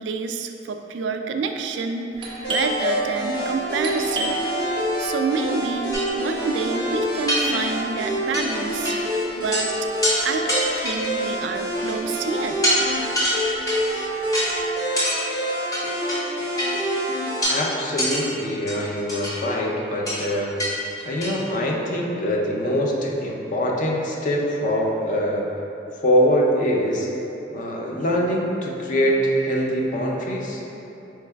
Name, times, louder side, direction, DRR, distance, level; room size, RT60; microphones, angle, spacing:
voice 1, 0.0-4.4 5.0-9.7 10.2-12.6, right 4 dB, 85° right, 5 dB, 0.3 m, -28 dB
Doorbell, 2.2-11.6 11.8-11.9 12.5-12.9 13.2-14.6, right 2 dB, 30° right, 0.5 m, -34 dB
sound 1, 2.4-17.4, equal, 80° left, 1.3 m, -27 dB
sound 2, 5.9-6.1 6.7-6.8 7.3-7.9 8.3-8.5 8.8-9.0 9.3-9.6 10.0-10.2 10.5-11.2 11.8-12.1 12.6-12.8 13.1-13.9 14.3-14.5 15.0-15.2 15.7-16.2 16.6-16.7 17.4-17.6 18.0-18.2 18.7-19.4 20.1-20.2 20.6-20.7 21.0-21.4, equal, 20° left, 0.9 m, -24 dB
voice 2, 17.5-20.5 21.1-25.4 26.0-27.1 27.5-30.6, equal, 45° left, -1 dB, 0.5 m, -23 dB
4.5 x 3.2 x 3.3 m, 2.9 s
head